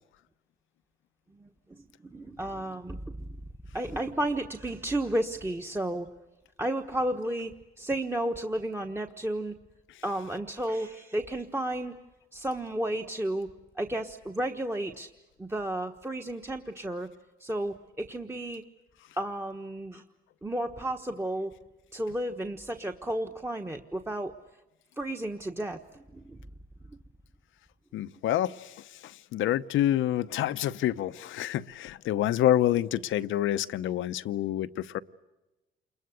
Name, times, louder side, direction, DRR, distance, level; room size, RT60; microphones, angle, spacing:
voice 1, 1.8-3.2 3.7-6.1 6.6-9.5 10.0-12.0 12.3-13.5 13.7-15.1 15.4-17.1 17.4-18.6 19.2-20.0 20.4-21.5 21.9-24.3 25.0-26.4 26.9-27.0, right 1 dB, 10° right, 4 dB, 1.2 m, -32 dB
voice 2, 27.9-35.0, left 12 dB, 80° left, 13 dB, 0.8 m, -28 dB
28.0 x 22.0 x 8.2 m, 1.0 s
cardioid pair, 90°, 20 cm